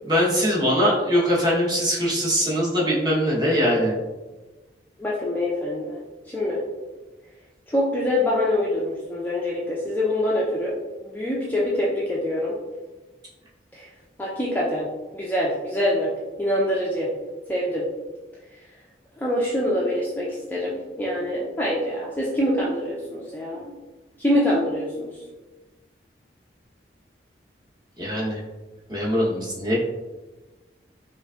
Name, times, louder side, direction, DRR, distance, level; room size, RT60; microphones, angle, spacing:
voice 1, 0.0-3.9 28.0-28.4 28.9-29.8, equal, 25° right, -5 dB, 0.9 m, -22 dB
voice 2, 5.0-6.0 6.3-6.6 7.7-10.8 11.0-12.5 13.7-13.9 14.2-14.9 15.1-16.1 16.4-17.1 17.5-17.8 19.2-23.7 24.2-25.1, left 1 dB, 10° left, -5 dB, 0.4 m, -25 dB
5.1 x 2.5 x 2.3 m, 1.2 s
head